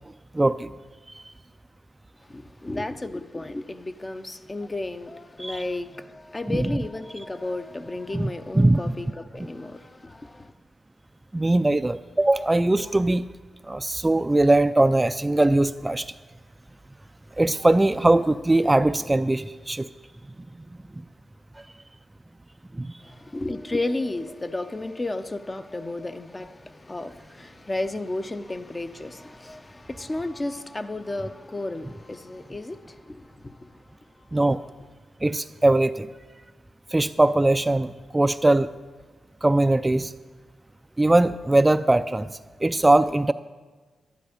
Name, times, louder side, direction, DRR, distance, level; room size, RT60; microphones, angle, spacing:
voice 1, 0.3-0.7 5.4-5.6 6.5-6.7 8.1-9.0 11.3-13.2 13.6-16.1 17.4-19.9 22.7-22.9 34.3-34.6 35.2-36.1 36.9-38.7 39.4-40.1 41.0-42.3 42.6-43.3, right 2 dB, 20° right, 0.3 m, -21 dB
voice 2, 2.3-10.5 23.0-33.8 34.2-34.3, left 2 dB, 25° left, 0.7 m, -33 dB
11.5 x 10.5 x 5.1 m
cardioid pair, 60°, 0 cm